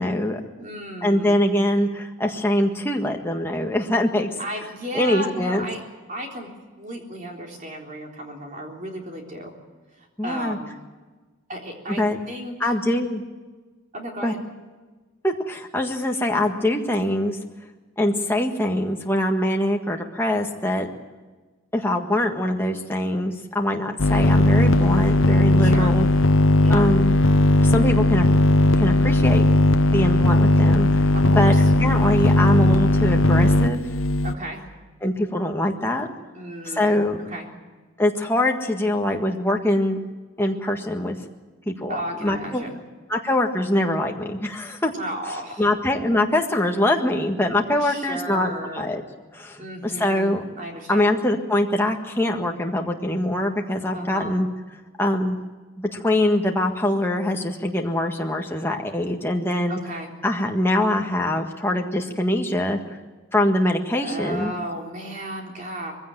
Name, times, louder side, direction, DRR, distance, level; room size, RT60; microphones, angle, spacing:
voice 1, 0.0-0.4 1.0-4.3 4.9-5.6 10.2-10.6 12.0-12.2 12.6-13.2 14.2-14.3 15.2-17.4 18.0-20.9 21.7-26.1 26.7-27.1 27.6-28.2 28.8-29.5 29.9-31.1 31.3-33.8 35.0-36.1 36.7-37.2 38.0-40.0 40.4-41.2 41.7-42.6 43.1-44.9 45.6-49.0 49.3-50.4 50.9-54.5 55.0-55.4 55.8-59.8 60.2-62.8 63.3-64.5, left 1 dB, 10° left, 2 dB, 1.6 m, -23 dB
voice 2, 0.6-1.4 4.4-5.8 6.1-6.5 6.8-9.5 10.0-10.8 11.5-12.7 13.9-14.4 25.6-26.0 26.6-26.8 31.1-31.7 34.2-34.6 36.3-37.5 41.9-42.8 44.9-45.7 47.8-48.9 49.6-51.2 53.9-54.4 59.7-60.1 64.0-65.9, equal, 35° right, 0 dB, 3.7 m, -34 dB
sound 1, 24.0-34.3, left 1 dB, 65° left, 0.9 m, -17 dB
21.5 x 16.0 x 9.1 m, 1.3 s
head